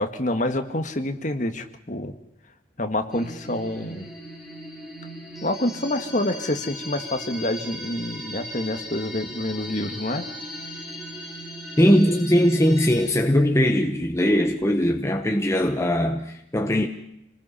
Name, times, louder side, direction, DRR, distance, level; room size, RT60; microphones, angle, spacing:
voice 1, 0.0-2.1 2.8-4.1 5.4-10.3, left 1 dB, 40° left, 1.8 m, -27 dB
sound 1, 3.1-13.1, equal, ahead, 6.9 m, -38 dB
voice 2, 11.8-16.9, equal, 15° left, 1.2 m, -20 dB
27.5 x 20.0 x 5.7 m
head